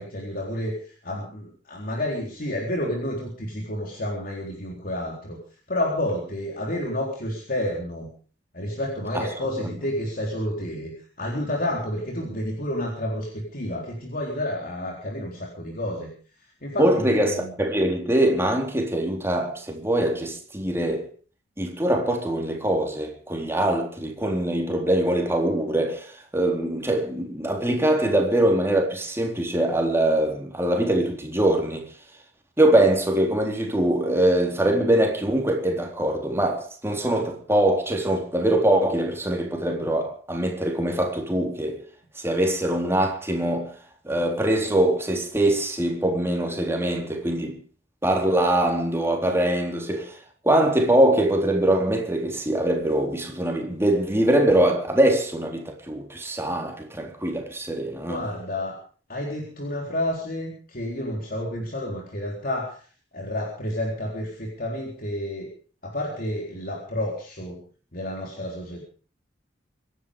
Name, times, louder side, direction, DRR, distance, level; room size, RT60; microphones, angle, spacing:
voice 1, 0.0-5.4 5.7-8.1 8.5-16.1 16.4-17.5 58.1-58.8 59.1-62.9 63.1-65.5 65.8-67.6 67.9-68.8, left 1 dB, 50° left, 3.8 m, -30 dB
voice 2, 16.8-21.1 21.6-31.8 32.6-41.8 42.2-43.7 44.0-47.6 48.0-50.2 50.4-58.3, right 1 dB, 15° right, 3.8 m, -23 dB
25.5 x 11.0 x 5.1 m
head